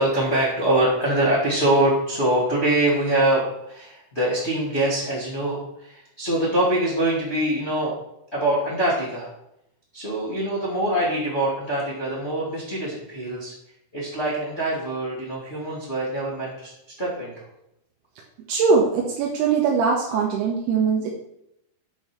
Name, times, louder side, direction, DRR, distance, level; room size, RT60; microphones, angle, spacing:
voice 1, 0.0-7.9 8.3-9.3 9.9-13.5 13.9-16.7 17.0-17.5, right 1 dB, 90° left, -6 dB, 0.6 m, -24 dB
voice 2, 18.5-21.1, right 5 dB, 75° right, -1 dB, 2.5 m, -21 dB
9.0 x 5.4 x 5.9 m, 0.81 s
omnidirectional pair, 5.7 m